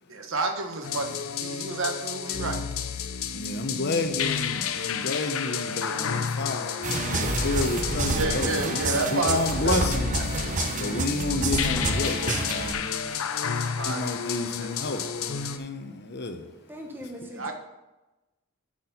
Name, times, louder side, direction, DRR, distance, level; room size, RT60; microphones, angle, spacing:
voice 1, 0.1-2.6 8.1-9.8 10.1-10.2 10.9-11.1 13.4-15.0 17.2-17.5, right 3 dB, 65° right, 4 dB, 1.0 m, -31 dB
sound 1, 0.8-15.6, left 7 dB, 80° left, 0.6 m, -31 dB
voice 2, 3.3-8.8 9.1-10.1 10.8-13.2 13.9-16.4, left 3 dB, 50° left, 6 dB, 0.8 m, -30 dB
sound 2, 6.8-12.7, right 3 dB, 35° right, 0.7 m, -29 dB
sound 3, 7.2-8.3 9.5-10.8 11.8-13.0, equal, 10° left, 1.8 m, -35 dB
voice 3, 16.7-17.5, equal, 10° right, 2 dB, 1.1 m, -40 dB
6.6 x 6.2 x 5.5 m, 1.1 s
head